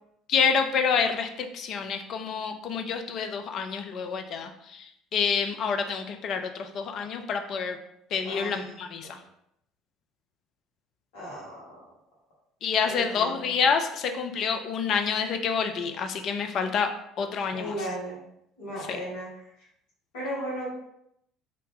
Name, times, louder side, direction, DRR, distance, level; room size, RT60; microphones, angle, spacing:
voice 1, 0.3-7.8 8.1-9.2 12.6-16.9 17.2-17.7 18.9-19.0, left 6 dB, 50° left, 6 dB, 0.4 m, -28 dB
voice 2, 8.2-8.7 9.0-9.2 11.1-11.8 12.8-13.5 17.5-18.2 18.6-19.3 20.1-20.7, right 1 dB, 65° left, -7 dB, 1.3 m, -36 dB
2.6 x 2.6 x 3.5 m, 0.77 s
figure-of-eight pair, 60°, 0 cm